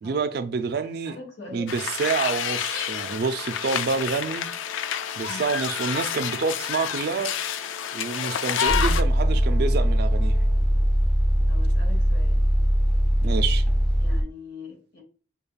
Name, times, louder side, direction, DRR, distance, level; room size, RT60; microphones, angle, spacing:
voice 1, 0.0-1.2 1.5-4.5 5.2-7.3 7.9-10.4 13.2-13.7, right 5 dB, 55° right, 0.3 m, -28 dB
voice 2, 0.7-1.8 5.3-5.5 11.5-12.5 14.0-15.0, left 4 dB, 60° left, 1.4 m, -42 dB
sound 1, 1.7-9.0, left 9 dB, 85° left, 0.3 m, -29 dB
Brass instrument, 1.7-10.6, left 4 dB, 25° left, 1.0 m, -47 dB
sound 2, 8.7-14.2, equal, 5° left, 0.5 m, -21 dB
6.6 x 2.3 x 2.3 m
head